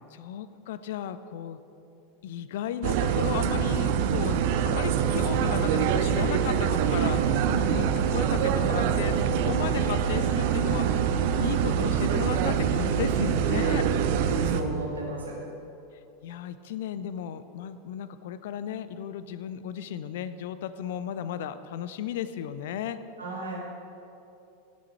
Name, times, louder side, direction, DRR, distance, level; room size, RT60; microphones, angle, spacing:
voice 1, 0.1-1.6 2.2-13.8 16.2-23.0, left 9 dB, 60° left, 13 dB, 0.5 m, -35 dB
sound 1, 2.8-14.6, right 8 dB, 55° right, 0.6 m, -25 dB
voice 2, 14.0-15.4 23.2-23.6, right 2 dB, 75° right, -3 dB, 2.4 m, -35 dB
16.0 x 7.6 x 4.4 m, 2.7 s
figure-of-eight pair, 85°, 0 cm